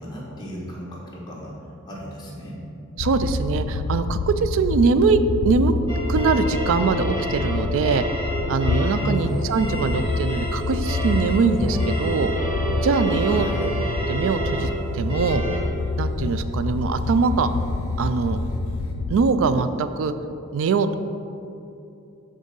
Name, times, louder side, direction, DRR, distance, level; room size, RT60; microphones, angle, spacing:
voice 1, 0.0-1.5 1.8-2.6 9.0-9.4 13.2-13.7, equal, 20° left, -5 dB, 1.3 m, -34 dB
sound 1, 3.0-19.2, left 3 dB, 90° left, 0.4 m, -28 dB
voice 2, 3.0-5.7 6.1-8.0 8.5-12.3 12.8-15.4 16.0-17.5 18.0-18.4 19.1-20.1 20.5-21.0, right 4 dB, 65° right, 11 dB, 0.3 m, -22 dB
sound 2, 5.9-15.6, right 1 dB, 25° right, 0.9 m, -29 dB
sound 3, 9.0-18.9, left 1 dB, 65° left, 0.7 m, -33 dB
6.3 x 3.8 x 5.3 m, 2.8 s
head